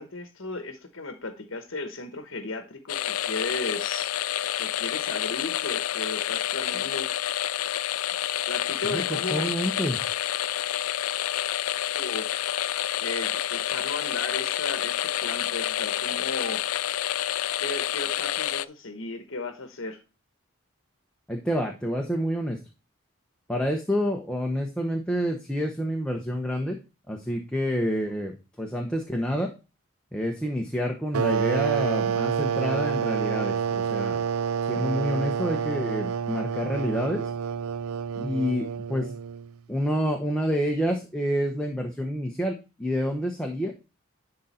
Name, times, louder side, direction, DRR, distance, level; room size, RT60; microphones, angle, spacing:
voice 1, 0.0-4.1 4.6-7.1 8.5-9.5 11.9-12.3 13.0-16.6 17.6-20.0 38.3-38.4, left 3 dB, 65° left, 7 dB, 1.0 m, -35 dB
sound 1, 2.9-18.6, left 12 dB, 85° left, 0.4 m, -28 dB
voice 2, 8.8-10.0 21.3-22.6 23.5-26.8 27.1-29.5 30.1-34.2 34.6-37.2 38.1-39.1 39.7-43.7, equal, 5° left, 1 dB, 0.9 m, -28 dB
sound 2, 31.1-39.5, right 7 dB, 90° right, 0.4 m, -28 dB
11.0 x 3.9 x 4.2 m, 0.30 s
head